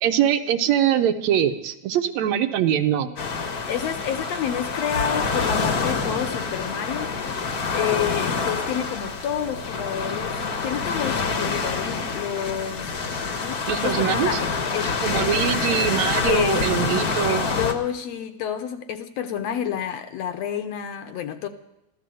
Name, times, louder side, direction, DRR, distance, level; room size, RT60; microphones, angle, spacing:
voice 1, 0.0-3.1 13.7-14.4 15.0-17.5, right 10 dB, 75° right, 7 dB, 2.0 m, -23 dB
sound 1, 3.2-17.7, left 4 dB, 50° left, 1.2 m, -26 dB
voice 2, 3.7-12.9 13.4-15.3 16.2-17.0 17.3-21.5, left 9 dB, 70° left, 9 dB, 1.8 m, -29 dB
14.0 x 12.5 x 7.6 m, 0.89 s
omnidirectional pair, 3.4 m